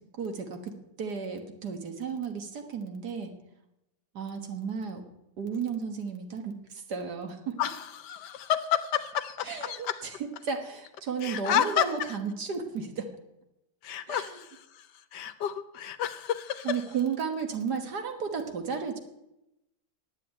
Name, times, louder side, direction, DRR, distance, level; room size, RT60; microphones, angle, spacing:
voice 1, 0.1-0.7 1.0-3.3 4.1-5.0 5.4-7.6 9.5-13.1 14.1-14.4 16.6-19.0, right 6 dB, 60° right, 5 dB, 1.9 m, -33 dB
voice 2, 7.6-10.0 11.2-11.9 13.8-14.9 15.1-16.8, left 10 dB, 70° left, 12 dB, 1.2 m, -30 dB
10.0 x 8.5 x 8.8 m, 0.88 s
omnidirectional pair, 2.0 m